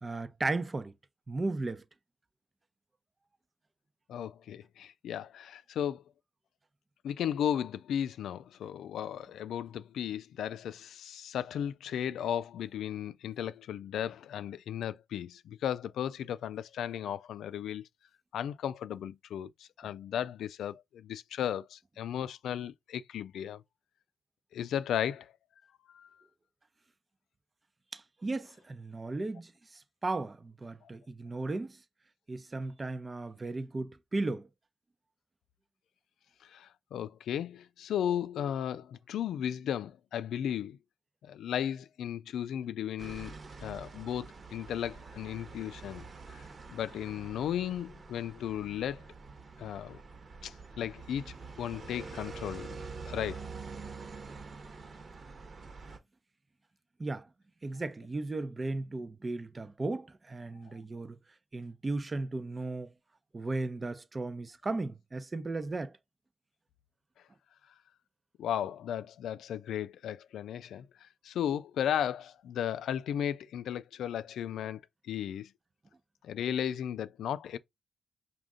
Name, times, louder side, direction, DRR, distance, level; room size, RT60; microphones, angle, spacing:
voice 1, 0.0-0.9 1.3-1.8 27.9-31.8 32.3-34.5 57.0-57.3 57.6-61.2 61.5-62.9 63.3-66.0, right 2 dB, 30° right, 0.6 m, -36 dB
voice 2, 4.1-6.0 7.0-17.9 18.3-23.6 24.5-25.3 25.9-26.1 36.4-40.8 41.2-46.4 46.7-49.0 49.6-50.0 50.4-53.5 68.4-75.5 76.2-77.6, left 10 dB, 90° left, 0.3 m, -35 dB
sound 1, 43.0-56.0, right 4 dB, 45° right, 1.1 m, -46 dB
5.0 x 2.5 x 3.6 m
cardioid pair, 70°, 0 cm